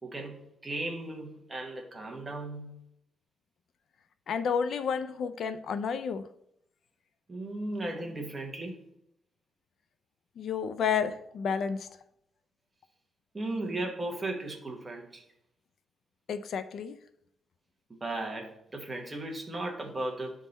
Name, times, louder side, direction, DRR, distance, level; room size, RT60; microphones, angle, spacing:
voice 1, 0.0-2.8 7.3-8.7 13.3-15.2 17.9-20.3, right 2 dB, 15° right, 1 dB, 1.1 m, -36 dB
voice 2, 4.3-6.2 10.4-11.8 16.3-17.0, left 6 dB, 60° left, 11 dB, 0.4 m, -30 dB
10.0 x 3.7 x 4.0 m, 0.75 s
wide cardioid pair, 170°, 0 cm